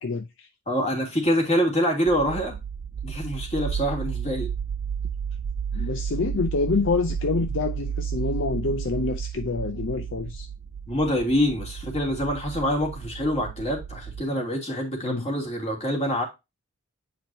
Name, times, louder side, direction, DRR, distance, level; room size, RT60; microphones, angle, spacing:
voice 1, 0.0-0.5 5.7-10.5 15.0-15.3, left 4 dB, 60° left, 0.6 m, -27 dB
voice 2, 0.7-2.6 3.0-4.5 10.9-16.2, equal, 30° left, 2.8 m, -25 dB
sound 1, 2.1-14.2, right 7 dB, 60° right, 0.4 m, -32 dB
9.0 x 5.0 x 2.7 m
head